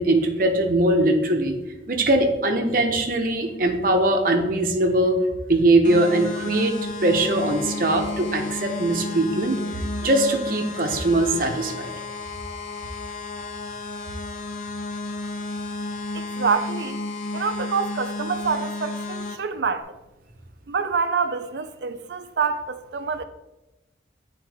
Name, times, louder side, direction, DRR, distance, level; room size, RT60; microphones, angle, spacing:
voice 1, 0.0-1.5 1.9-5.2 5.5-6.8 7.0-9.6 10.0-11.9, right 1 dB, 50° right, 0.8 m, -21 dB
sound 1, 5.8-19.4, left 2 dB, 45° left, 0.6 m, -32 dB
voice 2, 16.1-17.1 17.3-20.0 20.7-23.2, right 5 dB, 70° right, 0.5 m, -26 dB
8.3 x 4.2 x 3.4 m
head